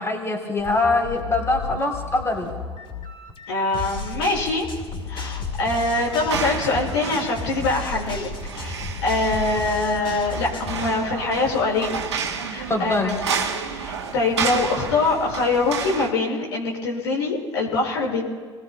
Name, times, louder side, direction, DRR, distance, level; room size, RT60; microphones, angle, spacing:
voice 1, 0.0-2.5 12.7-13.1, left 2 dB, 20° left, 2 dB, 3.4 m, -23 dB
sound 1, 0.6-10.9, left 4 dB, 40° left, 5.7 m, -33 dB
voice 2, 3.5-4.7 5.1-8.3 8.5-12.0 12.5-18.2, left 3 dB, 75° left, -4 dB, 4.7 m, -24 dB
sound 2, 5.9-16.1, right 6 dB, 80° right, 1.3 m, -31 dB
29.5 x 20.5 x 2.2 m, 1.5 s
figure-of-eight pair, 55°, 14 cm